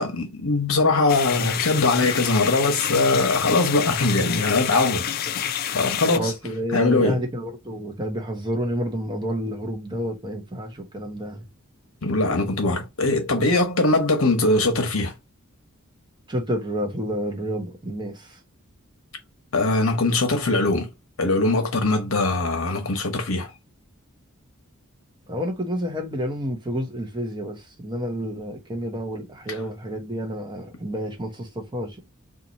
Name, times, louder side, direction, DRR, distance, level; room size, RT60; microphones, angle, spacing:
voice 1, 0.0-5.1 5.7-6.3 6.7-7.2 12.0-15.1 19.5-20.9 21.2-23.5, left 2 dB, 75° left, 1.0 m, -21 dB
sound 1, 1.1-6.2, left 9 dB, 45° left, 0.3 m, -28 dB
voice 2, 6.1-11.5 13.3-13.5 16.3-18.4 25.3-32.0, equal, 20° right, 0.8 m, -29 dB
2.8 x 2.5 x 3.9 m
head